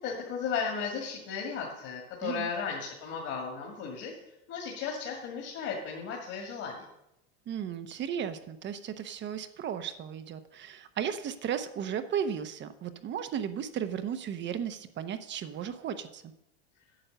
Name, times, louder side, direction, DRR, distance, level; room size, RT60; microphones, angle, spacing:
voice 1, 0.0-6.8, left 6 dB, 50° left, -1 dB, 2.2 m, -35 dB
voice 2, 7.5-16.3, right 8 dB, 35° right, 10 dB, 0.8 m, -35 dB
9.0 x 7.7 x 6.7 m, 0.86 s
supercardioid pair, 110°, 32 cm